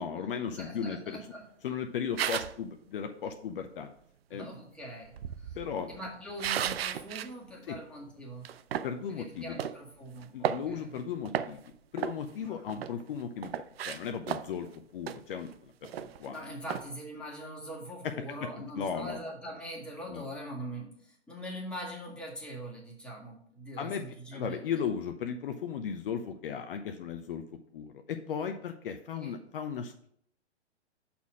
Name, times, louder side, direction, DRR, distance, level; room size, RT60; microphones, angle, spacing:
voice 1, 0.0-1.2 1.6-3.9 4.3-4.5 5.5-5.9 7.7-7.8 8.8-9.6 10.3-11.6 11.9-13.5 13.8-16.4 18.0-19.2 20.1-20.2 23.8-24.0 24.3-27.4 27.7-30.1, left 7 dB, 50° left, 6 dB, 0.7 m, -36 dB
voice 2, 0.6-1.5 4.3-5.6 5.9-8.5 9.1-10.9 12.4-12.9 16.3-24.6 29.1-29.3, equal, 5° left, -4 dB, 1.7 m, -42 dB
sound 1, 2.2-2.6 5.0-7.3 7.7-7.8 8.4-8.9 9.6-9.8 10.2-11.0 11.2-11.7 12.0-13.0 13.4-14.7 15.1-15.2 15.5-15.6 15.8-16.3 16.7-16.9, right 9 dB, 60° right, 0.5 m, -34 dB
6.9 x 4.3 x 6.2 m, 0.68 s
hypercardioid pair, 125°, 35 cm